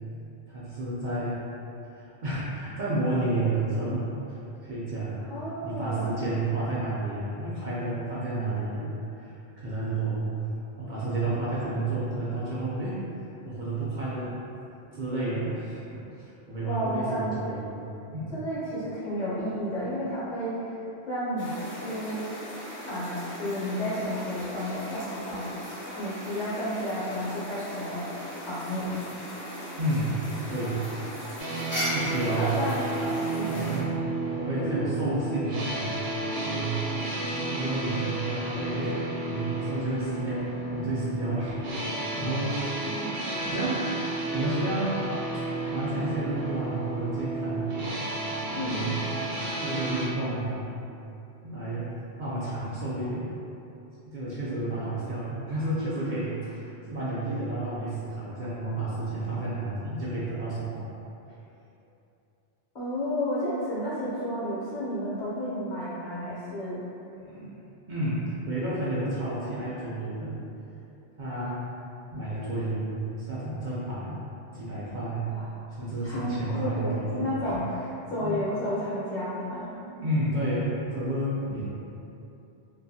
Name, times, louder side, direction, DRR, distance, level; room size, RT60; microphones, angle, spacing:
voice 1, 0.5-1.4 2.0-5.3 5.6-8.9 9.2-10.3 10.8-13.0 13.4-14.4 14.9-17.8 18.1-18.3 24.4-24.5 25.3-25.4 29.8-30.2 30.5-30.8 31.5-32.6 33.5-33.9 34.4-36.0 36.4-36.8 37.3-42.8 43.2-43.8 44.3-45.0 45.3-47.9 48.5-49.0 49.6-50.7 51.4-51.9 52.2-53.3 54.1-60.9 67.1-67.5 67.9-70.3 71.2-71.7 72.1-74.2 74.5-75.3 75.7-77.5 78.2-78.4 79.4-81.6, right 2 dB, 55° right, -10 dB, 0.6 m, -31 dB
voice 2, 5.3-6.1 16.6-17.6 18.3-22.2 22.9-28.1 28.4-29.0 32.3-33.7 42.8-43.2 48.5-48.8 62.7-66.8 75.2-75.5 76.0-77.7 78.1-79.7, equal, 50° left, -10 dB, 0.8 m, -32 dB
sound 1, 21.4-33.8, equal, 15° left, 0.5 m, -38 dB
sound 2, 31.4-50.1, right 2 dB, 80° right, 0.9 m, -32 dB
2.6 x 2.3 x 2.6 m, 2.8 s
omnidirectional pair, 1.1 m